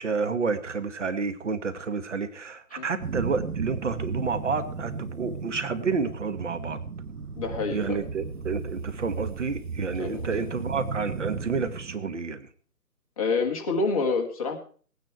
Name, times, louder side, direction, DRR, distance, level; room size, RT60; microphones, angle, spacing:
voice 1, 0.0-6.8 7.7-12.5, right 4 dB, 50° right, 10 dB, 1.4 m, -30 dB
sound 1, 3.0-12.0, right 5 dB, 70° right, 1.3 m, -35 dB
voice 2, 7.4-8.0 10.0-10.2 13.2-14.6, left 4 dB, 20° left, 2 dB, 1.4 m, -27 dB
18.5 x 9.6 x 4.5 m, 0.43 s
figure-of-eight pair, 155°, 47 cm